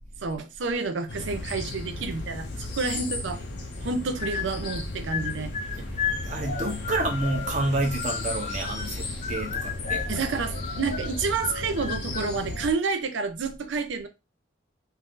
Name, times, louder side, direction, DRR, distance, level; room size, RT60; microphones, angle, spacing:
voice 1, 0.2-3.4 3.8-5.5 10.1-14.1, right 4 dB, 70° right, 0.5 m, -29 dB
sound 1, 1.1-12.7, left 2 dB, 60° left, 0.7 m, -35 dB
sound 2, 4.2-4.8 5.1-8.9 9.2-10.2 10.5-12.4, left 7 dB, 35° left, 0.3 m, -34 dB
voice 2, 5.8-10.1, right 2 dB, 40° right, 0.8 m, -29 dB
2.7 x 2.5 x 3.5 m
head